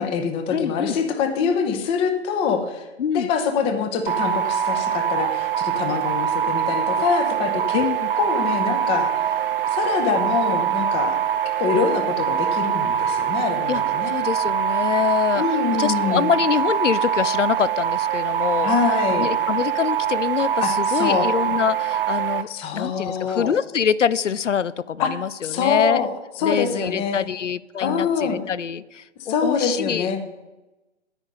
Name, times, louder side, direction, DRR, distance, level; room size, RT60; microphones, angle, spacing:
voice 1, 0.0-2.9 3.1-7.8 8.2-9.3 9.7-11.2 11.6-14.2 15.3-16.3 18.6-19.3 20.6-21.3 22.5-23.5 25.0-26.1 26.4-27.3 27.8-28.4 29.3-30.2, left 6 dB, 15° left, 6 dB, 0.8 m, -24 dB
voice 2, 0.5-1.0 3.0-3.3 7.7-8.1 13.7-18.7 19.2-26.1 26.4-30.1, left 7 dB, 85° left, 18 dB, 0.5 m, -25 dB
sound 1, 4.1-22.4, right 9 dB, 50° right, 0.7 m, -23 dB
10.0 x 9.7 x 3.8 m, 1.0 s
figure-of-eight pair, 125°, 36 cm